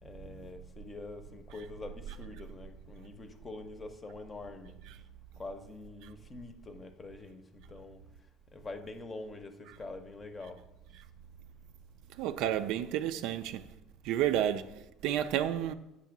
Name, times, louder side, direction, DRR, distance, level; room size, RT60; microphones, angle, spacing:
voice 1, 0.0-4.7 5.4-8.0 8.5-10.6, left 3 dB, 25° left, 0.7 m, -45 dB
voice 2, 12.2-13.6 14.0-15.7, right 11 dB, 75° right, 0.4 m, -31 dB
8.2 x 2.8 x 5.9 m
supercardioid pair, 110°, 0 cm